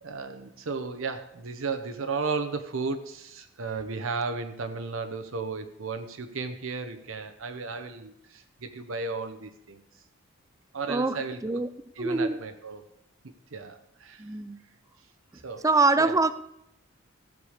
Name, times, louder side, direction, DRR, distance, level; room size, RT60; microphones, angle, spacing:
voice 1, 0.0-9.8 10.7-11.6 12.0-12.9 13.5-14.2 15.4-15.6 16.0-16.2, right 4 dB, 65° right, 8 dB, 0.8 m, -34 dB
voice 2, 10.9-11.7 12.0-12.4 14.2-14.6 15.6-16.3, right 3 dB, 15° right, 14 dB, 0.4 m, -24 dB
15.5 x 6.9 x 4.9 m, 0.79 s
head